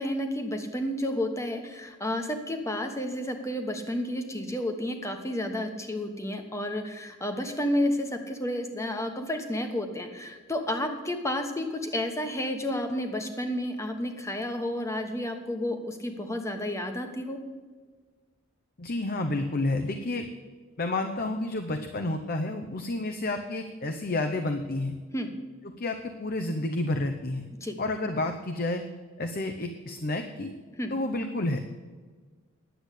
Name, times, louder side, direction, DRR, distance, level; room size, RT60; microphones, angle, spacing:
voice 1, 0.0-17.4 25.1-25.3 27.6-27.8 30.8-30.9, left 1 dB, 15° left, 5 dB, 1.1 m, -31 dB
voice 2, 18.8-20.3 20.8-25.0 25.8-27.4 27.8-28.8 29.2-30.5 30.9-31.6, left 2 dB, 45° left, 6 dB, 0.7 m, -30 dB
10.5 x 8.0 x 8.2 m, 1.5 s
head